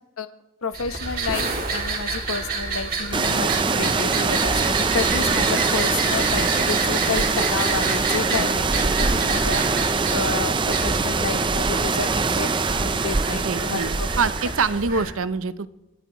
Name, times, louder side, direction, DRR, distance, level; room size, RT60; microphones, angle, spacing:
voice 1, 0.6-12.5 12.8-14.1, left 5 dB, 80° left, 11 dB, 1.0 m, -30 dB
sound 1, 0.7-15.1, right 4 dB, 40° right, 2.5 m, -28 dB
sound 2, 3.1-14.8, right 4 dB, 20° right, 0.5 m, -23 dB
voice 2, 13.3-15.7, right 4 dB, 75° right, 14 dB, 0.7 m, -25 dB
28.5 x 13.5 x 3.0 m, 1.1 s
head